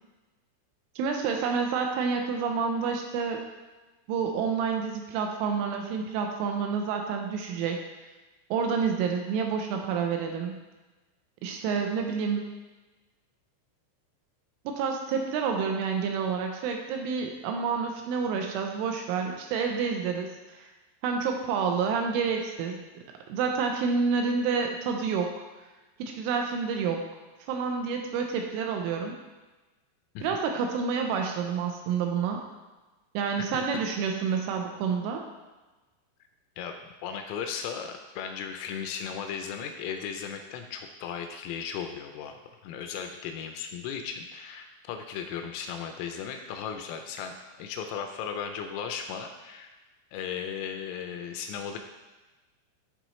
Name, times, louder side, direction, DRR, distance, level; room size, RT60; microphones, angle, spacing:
voice 1, 1.0-3.4 4.1-7.8 8.5-10.6 11.4-12.5 14.7-20.7 21.0-23.0 23.3-25.4 26.0-27.1 27.5-29.2 30.2-32.4 33.1-35.3, right 5 dB, 85° right, 3 dB, 2.9 m, -29 dB
voice 2, 33.5-33.8 36.6-36.7 37.0-49.7 50.1-51.8, left 7 dB, 85° left, 5 dB, 3.0 m, -36 dB
12.0 x 4.0 x 3.0 m, 1.2 s
omnidirectional pair, 6.0 m